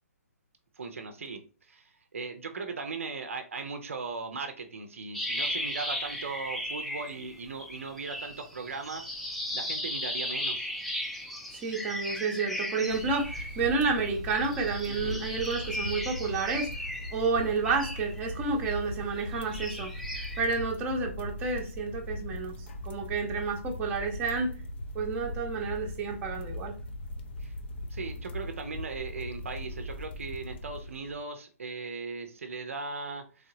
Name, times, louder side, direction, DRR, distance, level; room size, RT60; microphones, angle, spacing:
voice 1, 0.7-9.1 9.5-10.7 14.9-15.2 27.4-27.5 27.9-33.5, right 4 dB, 55° right, 6 dB, 0.6 m, -38 dB
sound 1, 5.1-7.3 7.6-13.9 14.3-18.7 19.2-20.4, equal, ahead, 0.4 m, -36 dB
voice 2, 11.6-16.7 17.1-19.9 20.4-22.6 22.8-24.5 24.9-26.7, right 4 dB, 15° right, 0 dB, 0.8 m, -30 dB
sound 2, 12.9-31.2, left 1 dB, 45° left, 0.6 m, -39 dB
3.7 x 3.4 x 2.7 m, 0.37 s
figure-of-eight pair, 130°, 9 cm